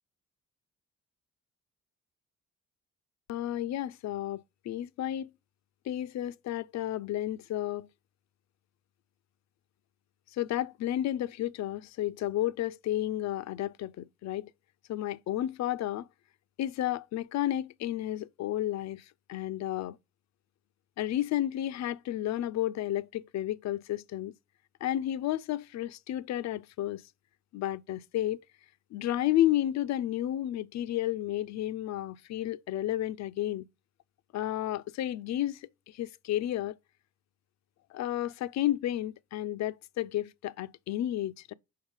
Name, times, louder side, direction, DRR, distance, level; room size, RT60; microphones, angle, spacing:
voice 1, 3.3-5.3 5.9-7.9 10.3-14.5 14.9-16.1 16.6-20.0 21.0-24.3 24.8-27.0 27.5-28.4 28.9-33.7 34.3-36.7 37.9-41.5, left 13 dB, 65° left, 0.5 m, -32 dB
5.6 x 4.3 x 4.9 m
cardioid pair, 90°, 30 cm